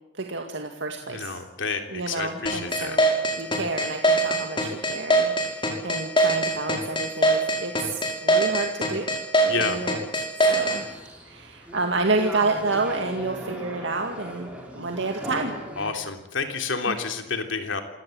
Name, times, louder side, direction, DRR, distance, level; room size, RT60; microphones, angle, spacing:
voice 1, 0.1-1.4 1.9-3.1 3.4-10.0 10.5-10.8 11.2-15.5 16.9-17.0, right 3 dB, 70° right, 3 dB, 2.2 m, -29 dB
voice 2, 1.0-3.0 9.5-9.8 15.8-17.8, left 4 dB, 75° left, 5 dB, 3.3 m, -29 dB
sound 1, 2.5-10.8, right 1 dB, 25° left, 5.2 m, -21 dB
sound 2, 10.4-15.9, equal, 5° right, 6.5 m, -38 dB
27.0 x 18.0 x 8.1 m, 0.86 s
head